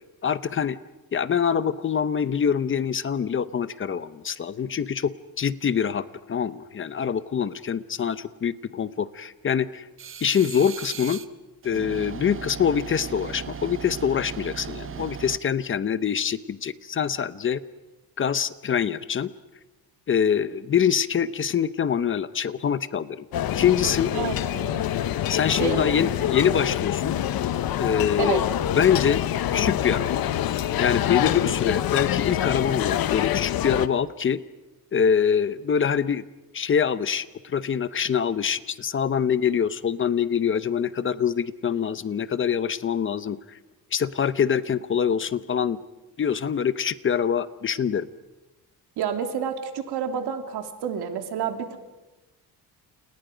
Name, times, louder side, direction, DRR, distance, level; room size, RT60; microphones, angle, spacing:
voice 1, 0.2-0.8 1.1-9.9 10.2-11.2 11.6-17.6 18.2-19.3 20.1-23.3 23.5-24.1 25.3-27.2 27.8-29.2 29.5-30.2 30.8-34.4 34.9-36.2 36.5-43.6 43.9-45.8 46.2-48.1, left 7 dB, 30° left, 14 dB, 0.8 m, -25 dB
sound 1, 10.0-11.3 11.6-15.4, right 7 dB, 35° right, 0.8 m, -37 dB
sound 2, 23.3-33.9, left 11 dB, 65° left, 1.1 m, -26 dB
voice 2, 24.1-24.8 25.5-26.1 28.2-28.5 49.0-51.8, right 8 dB, 85° right, 5 dB, 3.0 m, -29 dB
29.5 x 29.5 x 5.1 m, 1.1 s
cardioid pair, 160°, 38 cm